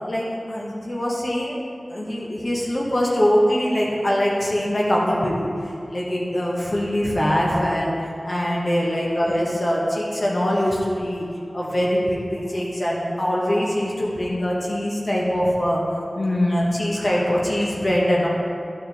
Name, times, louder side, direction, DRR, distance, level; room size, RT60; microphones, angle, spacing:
voice 1, 0.0-5.5 5.9-7.9 8.2-11.2 11.5-15.8 16.1-18.3, equal, 50° left, -4 dB, 1.1 m, -23 dB
11.5 x 4.4 x 3.5 m, 2.6 s
wide cardioid pair, 50°, 0 cm